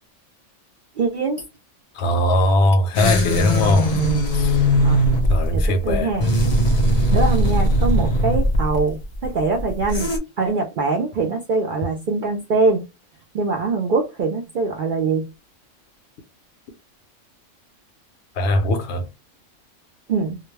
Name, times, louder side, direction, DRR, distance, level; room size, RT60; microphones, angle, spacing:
voice 1, 1.0-1.4 3.9-4.0 4.8-5.0 5.5-6.3 7.1-10.1 10.4-12.8 13.3-15.3 20.1-20.4, right 4 dB, 60° right, 0.5 m, -23 dB
voice 2, 2.0-3.9 4.3-4.7 5.3-6.1 18.4-19.1, left 1 dB, 65° left, 0.8 m, -20 dB
sound 1, 2.9-10.2, equal, 40° left, 0.6 m, -19 dB
2.3 x 2.2 x 3.1 m
omnidirectional pair, 1.3 m